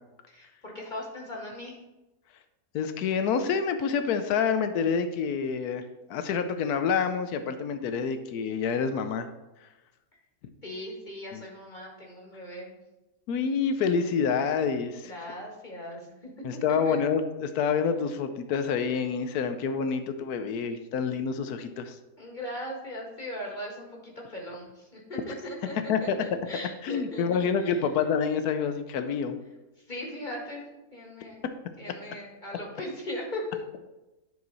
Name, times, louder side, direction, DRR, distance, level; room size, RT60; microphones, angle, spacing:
voice 1, 0.3-1.8 10.6-12.8 15.0-17.0 22.2-27.9 29.8-30.7 30.9-31.4 31.8-33.6, left 1 dB, 30° left, -2 dB, 1.9 m, -39 dB
voice 2, 2.7-5.8 6.1-9.3 11.3-11.4 13.3-15.1 16.4-22.0 25.9-26.2 26.8-29.3, left 6 dB, 80° left, 9 dB, 1.2 m, -27 dB
11.0 x 4.8 x 4.1 m, 1.0 s
omnidirectional pair, 1.6 m